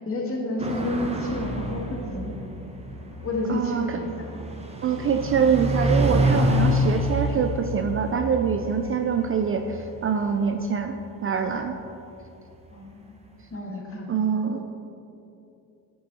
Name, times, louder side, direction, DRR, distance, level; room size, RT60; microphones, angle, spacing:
voice 1, 0.1-2.3 3.2-4.3 12.7-13.2 13.5-14.7, left 2 dB, 25° left, 0 dB, 1.9 m, -31 dB
sound 1, 0.6-11.6, equal, 15° right, 1.1 m, -28 dB
voice 2, 3.5-4.0 4.8-10.9 11.2-11.7 14.1-14.7, right 7 dB, 30° right, 6 dB, 0.4 m, -24 dB
9.2 x 6.6 x 4.1 m, 2.8 s
supercardioid pair, 85°, 47 cm